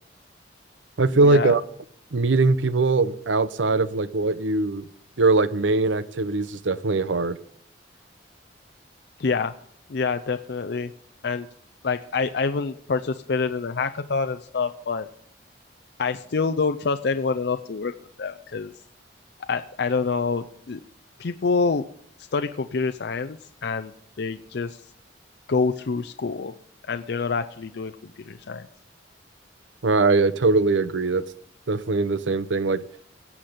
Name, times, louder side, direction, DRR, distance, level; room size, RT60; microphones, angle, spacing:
voice 1, 1.0-1.6 2.1-4.9 5.2-7.4 29.8-31.2 31.7-32.8, right 3 dB, 85° right, 15 dB, 0.7 m, -21 dB
voice 2, 9.2-9.5 9.9-10.9 11.2-11.5 11.8-15.1 16.0-18.7 19.5-20.8 21.2-21.9 22.3-24.8 25.5-26.5 26.9-27.9 28.3-28.7, left 4 dB, 60° left, 8 dB, 0.5 m, -26 dB
17.0 x 5.9 x 8.0 m, 0.67 s
head